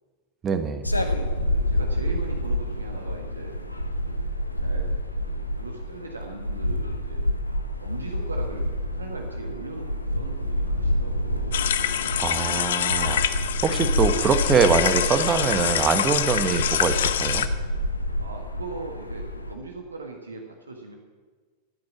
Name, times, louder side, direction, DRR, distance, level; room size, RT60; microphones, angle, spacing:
voice 1, 0.4-0.9 12.2-13.2 13.6-17.5, right 6 dB, 25° right, 9 dB, 1.3 m, -23 dB
sound 1, 0.8-19.5, left 1 dB, 85° left, 1.1 m, -28 dB
voice 2, 1.4-3.6 4.1-4.2 4.6-4.9 5.2-7.2 7.8-11.6 18.2-20.9, right 3 dB, 75° right, 2 dB, 1.5 m, -39 dB
sound 2, 11.5-17.5, left 10 dB, 60° left, 0.7 m, -26 dB
14.5 x 9.2 x 7.4 m, 1.4 s
figure-of-eight pair, 90°, 0 cm